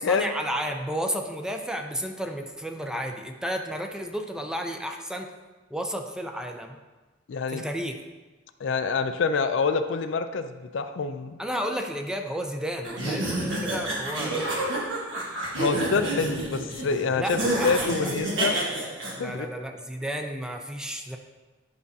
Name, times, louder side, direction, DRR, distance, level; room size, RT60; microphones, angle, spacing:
voice 1, 0.1-5.3 5.7-6.8 7.5-7.9 11.4-14.7 17.2-18.1 19.2-21.2, equal, 5° right, 3 dB, 0.4 m, -32 dB
voice 2, 7.3-7.6 8.6-11.4 15.5-18.6 19.2-19.5, left 4 dB, 85° left, 9 dB, 0.4 m, -26 dB
sound 1, 12.8-19.1, right 1 dB, 80° right, 1.5 m, -29 dB
9.3 x 5.1 x 2.8 m, 1.2 s
head